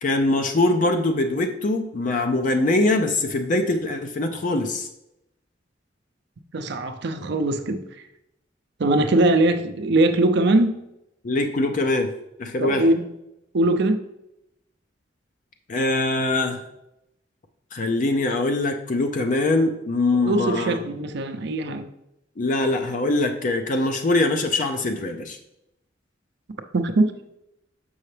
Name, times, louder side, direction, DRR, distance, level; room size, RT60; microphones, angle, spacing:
voice 1, 0.0-4.9 11.2-12.1 12.4-12.9 15.7-16.6 17.7-20.8 22.4-25.4, left 2 dB, 45° left, 5 dB, 0.5 m, -23 dB
voice 2, 6.5-7.8 8.8-10.8 12.6-13.1 13.5-14.0 20.1-21.9 26.7-27.1, right 2 dB, 65° right, 7 dB, 0.6 m, -21 dB
6.7 x 5.5 x 3.3 m, 0.86 s
head